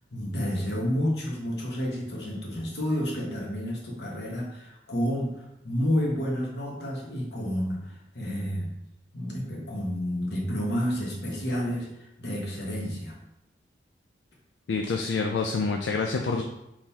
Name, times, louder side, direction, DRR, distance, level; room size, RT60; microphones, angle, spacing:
voice 1, 0.1-8.7 9.1-13.1, equal, 65° left, -2 dB, 1.2 m, -30 dB
voice 2, 14.7-16.4, left 4 dB, 85° left, 2 dB, 0.4 m, -27 dB
3.8 x 3.1 x 4.1 m, 0.86 s
head